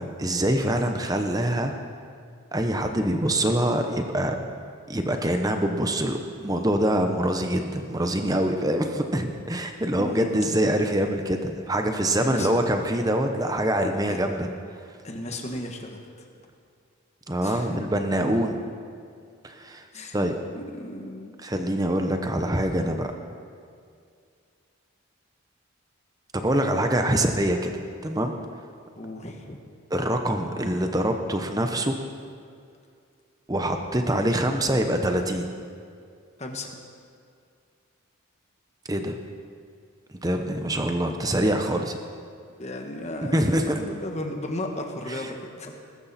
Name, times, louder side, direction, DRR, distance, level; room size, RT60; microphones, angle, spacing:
voice 1, 0.0-1.7 2.5-4.4 4.9-14.5 17.3-18.6 19.4-19.8 20.1-20.3 21.4-23.1 26.3-28.3 29.9-32.0 33.5-35.4 38.9-39.2 40.2-42.0 43.3-43.8 45.1-45.3, right 1 dB, 15° right, 5 dB, 0.9 m, -25 dB
voice 2, 9.9-10.4 12.2-12.5 14.1-14.2 15.0-16.0 17.4-17.8 18.2-18.5 19.9-20.3 20.5-21.4 29.0-29.6 36.4-36.8 40.7-40.9 42.6-45.8, left 1 dB, 30° left, 3 dB, 1.5 m, -35 dB
21.0 x 12.5 x 4.3 m, 2.3 s
head